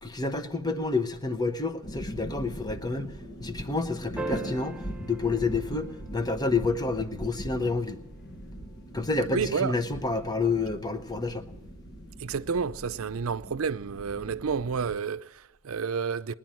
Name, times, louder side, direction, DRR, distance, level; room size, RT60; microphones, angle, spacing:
voice 1, 0.0-3.1 3.4-8.0 8.9-11.5, left 3 dB, 20° left, 0.9 m, -29 dB
sound 1, 1.8-15.0, equal, 55° left, 1.3 m, -41 dB
sound 2, 4.2-6.7 8.9-9.0, right 2 dB, 5° right, 0.6 m, -39 dB
voice 2, 9.3-9.7 12.2-16.3, right 5 dB, 85° right, 0.5 m, -30 dB
19.0 x 10.0 x 7.4 m
head